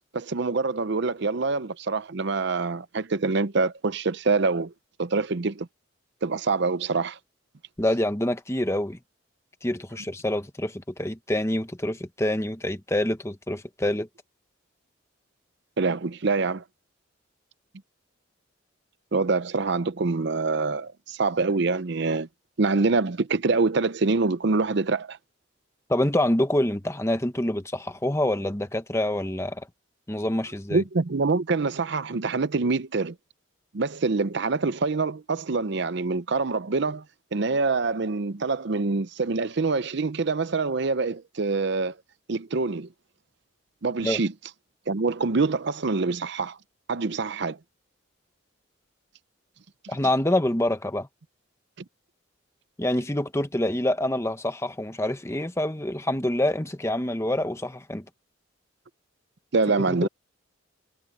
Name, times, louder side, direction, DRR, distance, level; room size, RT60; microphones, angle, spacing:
voice 1, 0.1-4.7 5.0-5.7 6.2-7.2 15.8-16.6 19.1-22.3 22.6-25.2 30.7-33.1 33.7-37.0 37.3-42.0 42.3-42.9 43.8-44.3 44.9-46.6 46.9-47.6 59.5-60.1, right 3 dB, 60° right, 0.6 m, -25 dB
voice 2, 7.8-9.0 9.6-14.1 25.9-29.7 30.1-30.8 44.0-44.2 49.9-51.1 52.8-58.0 59.9-60.1, left 1 dB, 15° left, 1.1 m, -26 dB
head